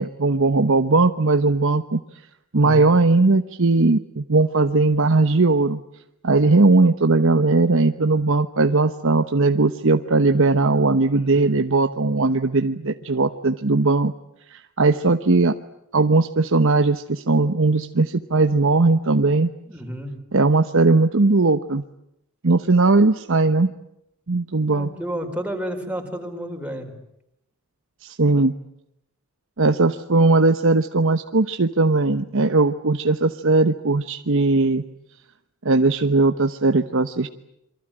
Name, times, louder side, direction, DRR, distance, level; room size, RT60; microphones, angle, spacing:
voice 1, 0.0-2.0 2.5-5.8 6.2-14.1 14.5-15.5 15.9-19.5 20.3-21.8 22.4-23.7 24.3-24.9 28.0-28.5 29.6-34.8 35.6-37.3, right 3 dB, 65° right, 9 dB, 1.0 m, -18 dB
voice 2, 2.6-2.9 11.1-11.6 19.7-20.1 24.7-26.9, equal, 5° right, 3 dB, 4.8 m, -31 dB
27.0 x 24.0 x 8.9 m, 0.79 s
head